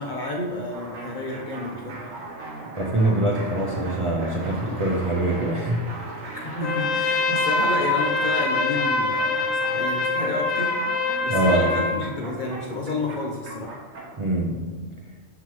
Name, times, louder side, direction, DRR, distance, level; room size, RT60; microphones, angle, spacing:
voice 1, 0.0-2.1 6.3-13.7, left 2 dB, 50° left, -1 dB, 0.6 m, -30 dB
sound 1, 0.7-14.3, right 2 dB, 70° right, 1.1 m, -39 dB
voice 2, 2.8-5.8 6.2-6.3 11.3-11.7 14.2-14.7, right 1 dB, 35° right, -3 dB, 0.5 m, -23 dB
Trumpet, 6.6-12.0, left 3 dB, 85° left, 1.1 m, -24 dB
5.7 x 5.6 x 3.1 m, 1.4 s
omnidirectional pair, 1.3 m